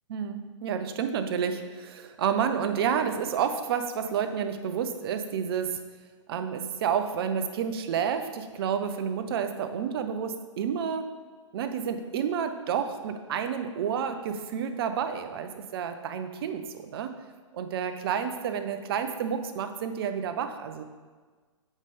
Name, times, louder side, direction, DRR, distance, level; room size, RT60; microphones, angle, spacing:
voice 1, 0.1-5.8 6.3-11.1 11.5-17.2 17.5-20.8, right 7 dB, 50° right, 8 dB, 0.6 m, -30 dB
7.2 x 5.3 x 3.4 m, 1.4 s
figure-of-eight pair, 120°, 16 cm